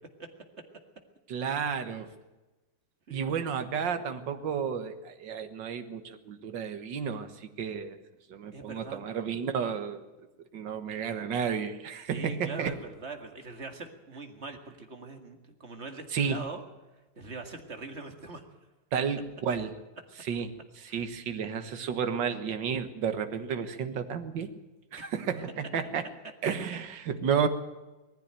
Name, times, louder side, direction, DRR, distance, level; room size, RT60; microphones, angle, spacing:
voice 1, 1.3-2.1 3.1-8.0 8.3-10.0 10.5-12.7 16.1-16.4 18.9-19.7 20.2-24.5 24.9-26.1 26.4-27.5, right 7 dB, 65° right, 8 dB, 2.0 m, -32 dB
voice 2, 8.5-9.0 12.1-16.6 17.2-18.4 20.9-21.0 25.0-25.1, right 3 dB, 35° right, 5 dB, 2.2 m, -42 dB
19.5 x 15.0 x 9.0 m, 1.1 s
omnidirectional pair, 2.2 m